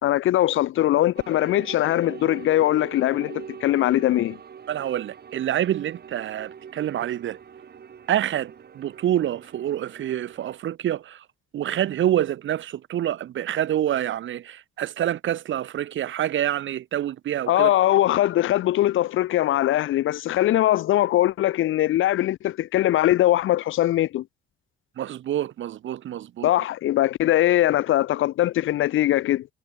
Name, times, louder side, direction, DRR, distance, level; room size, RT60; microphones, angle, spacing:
voice 1, 0.0-4.4 17.5-24.2 26.4-29.5, left 14 dB, 75° left, 2.0 m, -21 dB
sound 1, 1.1-10.6, right 7 dB, 50° right, 6.6 m, -43 dB
voice 2, 4.7-7.4 8.1-11.2 11.5-17.7 25.0-26.5, right 11 dB, 70° right, 3.3 m, -27 dB
supercardioid pair, 65°, 21 cm